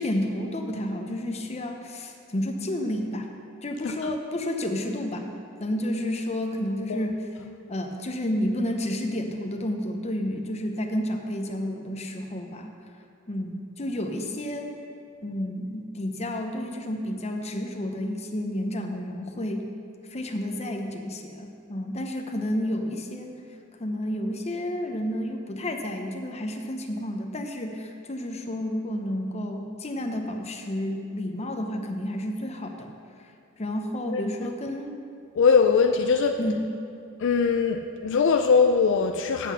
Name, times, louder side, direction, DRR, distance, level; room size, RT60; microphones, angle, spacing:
voice 1, 0.0-3.3 3.6-5.3 5.6-7.2 7.7-12.7 13.3-14.7 15.2-19.7 20.1-23.3 23.8-32.9 33.6-34.9 36.4-36.6, left 1 dB, 30° left, 4 dB, 0.8 m, -30 dB
voice 2, 35.3-36.4 37.2-39.5, left 5 dB, 60° left, 5 dB, 0.4 m, -21 dB
8.2 x 8.1 x 5.7 m, 2.4 s
head